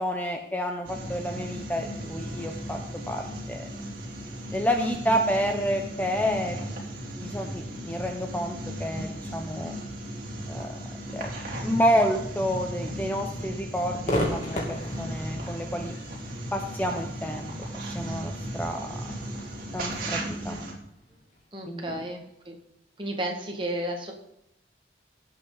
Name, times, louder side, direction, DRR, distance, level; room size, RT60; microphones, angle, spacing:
voice 1, 0.0-2.8 3.1-3.6 4.5-6.6 7.2-9.7 10.5-10.7 11.1-11.3 11.6-15.9 16.5-17.5 17.9-19.3 19.7-20.6 21.7-22.0, equal, 10° left, 3 dB, 0.7 m, -29 dB
sound 1, 0.8-20.7, right 1 dB, 45° right, 3.0 m, -36 dB
voice 2, 4.8-5.2 21.5-22.5 23.0-24.1, right 1 dB, 25° right, 1 dB, 1.9 m, -33 dB
Crowd / Fireworks, 14.0-21.4, equal, 40° left, 2.7 m, -36 dB
18.0 x 7.8 x 4.0 m, 0.80 s
head